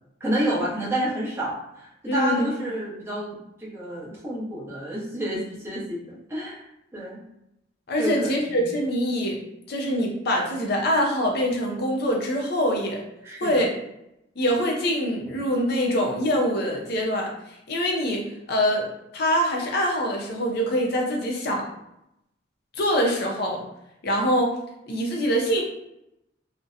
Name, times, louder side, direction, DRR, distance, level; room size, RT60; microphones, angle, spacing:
voice 1, 0.2-6.6 6.9-7.2 8.0-8.6 13.2-13.6, right 1 dB, 15° right, -7 dB, 0.7 m, -29 dB
voice 2, 2.1-2.5 7.9-9.4 9.7-13.0 13.4-13.7 14.4-18.9 19.1-21.7 22.7-23.7 24.0-24.5 24.9-25.6, equal, 55° left, 0 dB, 0.5 m, -24 dB
2.7 x 2.1 x 2.4 m, 0.83 s
head